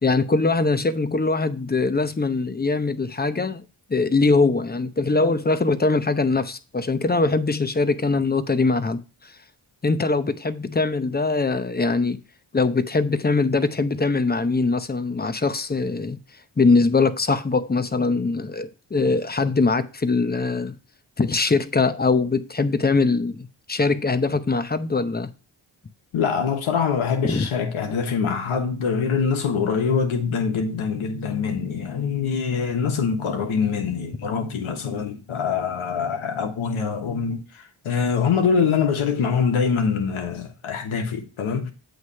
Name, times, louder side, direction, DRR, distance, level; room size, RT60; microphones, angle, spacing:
voice 1, 0.0-3.6 3.9-9.3 9.8-12.2 12.5-16.2 16.6-20.8 21.2-25.3 27.2-27.5, left 3 dB, 20° left, 0.7 m, -22 dB
voice 2, 26.1-41.7, left 6 dB, 85° left, 1.3 m, -24 dB
8.0 x 3.2 x 5.5 m
cardioid pair, 45°, 48 cm